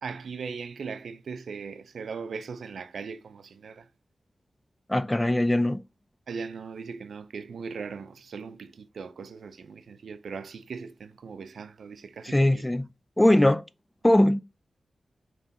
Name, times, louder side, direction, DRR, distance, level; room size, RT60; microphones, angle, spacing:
voice 1, 0.0-3.9 6.3-12.7, right 5 dB, 80° right, 0.5 m, -39 dB
voice 2, 4.9-5.8 12.2-12.9 13.2-13.6 14.0-14.4, left 1 dB, 15° left, 0.4 m, -21 dB
5.2 x 3.3 x 2.7 m
cardioid pair, 45°, 0 cm